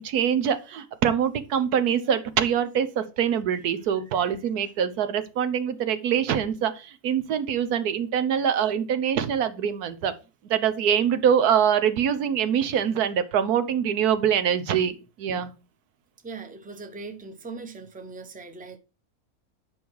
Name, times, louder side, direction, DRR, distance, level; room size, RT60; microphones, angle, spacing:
voice 1, 0.0-10.1 10.5-15.5, right 8 dB, 85° right, 1.4 m, -24 dB
voice 2, 16.2-18.8, right 3 dB, 5° right, 0.7 m, -40 dB
9.4 x 5.4 x 4.7 m
omnidirectional pair, 1.6 m